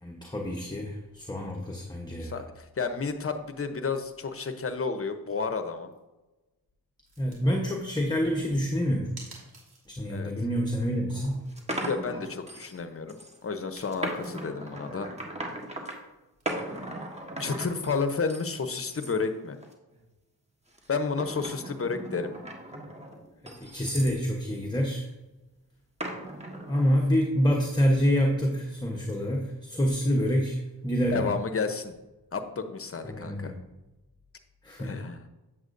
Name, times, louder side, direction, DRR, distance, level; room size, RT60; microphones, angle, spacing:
voice 1, 0.0-2.3 7.2-9.1 10.0-11.4 23.4-25.1 26.7-31.3 33.0-33.6 34.6-34.9, equal, 10° left, 1 dB, 1.0 m, -27 dB
voice 2, 2.2-5.9 10.1-10.3 11.8-15.1 17.4-19.6 20.9-22.3 31.1-31.9 32.3-33.5 34.8-35.3, left 4 dB, 40° left, 8 dB, 0.8 m, -31 dB
sound 1, 5.1-5.4 5.8-6.0 7.1-7.8 9.2-10.2 10.4-10.5 10.9-11.6 13.4-14.6 16.4-16.5, right 3 dB, 85° right, 2.3 m, -51 dB
sound 2, 10.6-10.7 11.2-12.8 13.1-13.4 13.9-16.0 16.5-18.5 18.8-19.1 19.6-20.0 20.7-24.2 26.0-26.9, right 1 dB, 20° right, 1.5 m, -37 dB
7.9 x 7.6 x 2.6 m, 1.1 s
cardioid pair, 60°, 36 cm